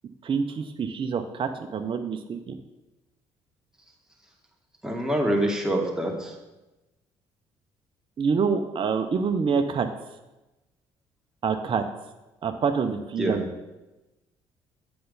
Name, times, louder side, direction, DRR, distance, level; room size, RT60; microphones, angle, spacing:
voice 1, 0.2-2.6 8.2-9.9 11.4-11.8 12.4-13.5, right 5 dB, 40° right, 6 dB, 0.7 m, -26 dB
voice 2, 4.8-6.3 13.2-13.4, right 1 dB, 5° right, -1 dB, 2.1 m, -25 dB
7.7 x 6.8 x 4.0 m, 1.0 s
hypercardioid pair, 60°, 13 cm